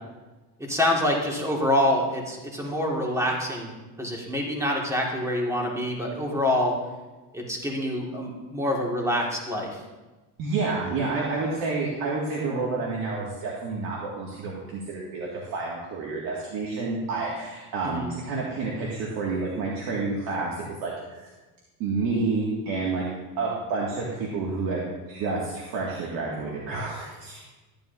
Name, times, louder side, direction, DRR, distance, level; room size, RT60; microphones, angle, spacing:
voice 1, 0.6-3.7 4.0-6.8 7.3-9.8 17.8-18.1, left 1 dB, 10° right, -1 dB, 2.0 m, -26 dB
voice 2, 10.4-21.3 21.8-23.0 23.4-27.4, right 3 dB, 75° right, -4 dB, 2.1 m, -29 dB
14.0 x 10.5 x 2.7 m, 1.2 s
cardioid pair, 130°, 36 cm